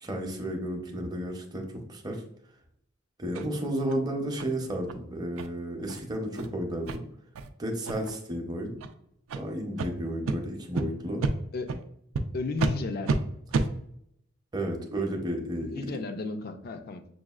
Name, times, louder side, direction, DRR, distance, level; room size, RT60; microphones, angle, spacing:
voice 1, 0.0-2.2 3.2-7.0 7.6-8.8 9.3-11.2 14.5-16.0, right 1 dB, 20° right, 2 dB, 0.6 m, -32 dB
sound 1, 3.3-3.5 3.9-4.0 4.4-4.5 4.9-5.0 5.4-5.5 5.9-6.0 6.3-6.5 6.9-7.0 7.4-7.5 7.8-8.2 8.8-8.9 9.3-9.4 9.8-9.9 10.3-10.4 10.8-10.9 11.2-11.3 11.7-11.8 12.1-12.2 12.6-12.7 13.1-13.2 13.5-13.7, right 3 dB, 90° right, 0.4 m, -29 dB
voice 2, 12.3-13.2 15.6-17.1, left 3 dB, 50° left, 9 dB, 0.4 m, -34 dB
6.1 x 2.3 x 2.3 m, 0.72 s
head